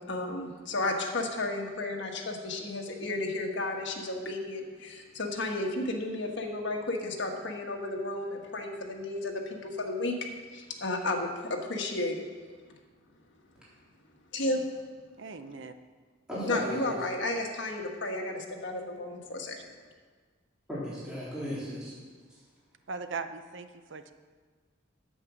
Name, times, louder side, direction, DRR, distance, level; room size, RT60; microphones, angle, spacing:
voice 1, 0.0-10.2 10.5-12.3 14.3-14.8 16.4-19.6, left 2 dB, 60° left, 2 dB, 1.5 m, -33 dB
voice 2, 15.2-15.7 22.9-24.1, right 4 dB, 65° right, 9 dB, 0.7 m, -39 dB
voice 3, 16.3-17.0 18.3-18.4 20.7-22.0, equal, 5° right, -10 dB, 3.6 m, -36 dB
8.9 x 8.4 x 6.2 m, 1.5 s
head